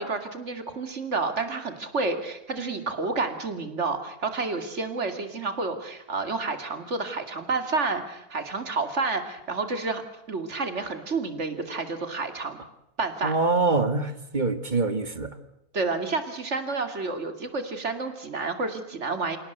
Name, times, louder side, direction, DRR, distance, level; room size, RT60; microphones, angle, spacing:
voice 1, 0.0-10.0 10.3-12.6 13.0-13.3 15.7-19.4, right 3 dB, 55° right, 8 dB, 2.8 m, -30 dB
voice 2, 13.2-15.3, right 3 dB, 35° right, 11 dB, 1.8 m, -25 dB
27.5 x 18.0 x 8.0 m, 0.85 s
omnidirectional pair, 1.5 m